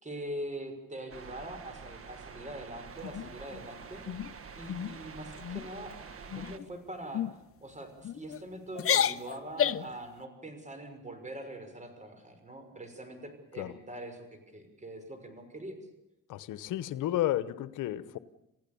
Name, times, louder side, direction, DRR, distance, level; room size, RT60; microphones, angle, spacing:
voice 1, 0.0-4.0 4.5-5.9 6.3-7.2 7.6-14.3 14.5-15.8, right 1 dB, 25° right, 7 dB, 6.0 m, -43 dB
sound 1, 1.1-6.6, right 5 dB, 50° right, 1.7 m, -47 dB
sound 2, 3.0-3.6 4.1-4.3 4.7-5.0 5.3-5.7 6.3-6.7 7.1-7.3 8.0-8.4 8.7-10.0, left 9 dB, 50° left, 0.8 m, -31 dB
voice 2, 16.3-18.2, left 13 dB, 85° left, 15 dB, 1.0 m, -32 dB
28.5 x 16.0 x 7.0 m, 0.89 s
cardioid pair, 90°, 30 cm